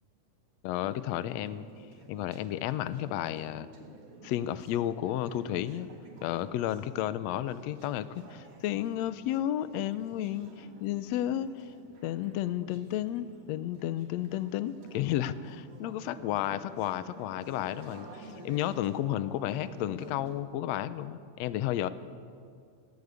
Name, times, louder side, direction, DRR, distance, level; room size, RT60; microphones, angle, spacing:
voice 1, 0.6-1.7 2.1-3.7 4.2-5.9 6.2-11.7 12.0-21.9, left 12 dB, 75° left, 14 dB, 1.7 m, -32 dB
Conversation / Chatter, 0.7-20.4, right 1 dB, 80° right, 4.4 m, -51 dB
20.0 x 17.0 x 8.2 m, 2.2 s
omnidirectional pair, 3.6 m